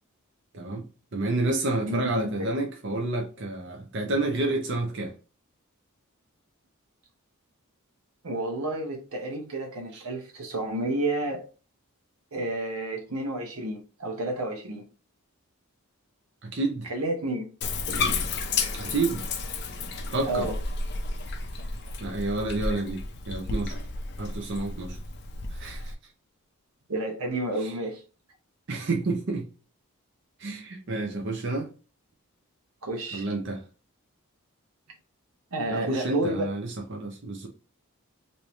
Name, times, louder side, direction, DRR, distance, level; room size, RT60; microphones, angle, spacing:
voice 1, 0.5-0.9 1.1-5.1 9.9-10.0 16.4-16.9 18.8-19.2 20.1-20.5 22.0-23.8 24.2-25.0 25.5-25.9 27.6-27.7 28.7-29.5 30.4-31.7 33.1-33.6 35.7-37.5, right 2 dB, 55° right, 0.6 m, -29 dB
voice 2, 1.9-2.6 8.2-11.4 12.3-14.9 16.8-17.5 20.2-20.5 26.9-28.0 32.8-33.3 35.5-36.5, right 1 dB, 75° right, 0.9 m, -30 dB
Bathtub (filling or washing), 17.6-25.9, left 3 dB, 50° left, 0.5 m, -32 dB
3.2 x 2.7 x 3.1 m
head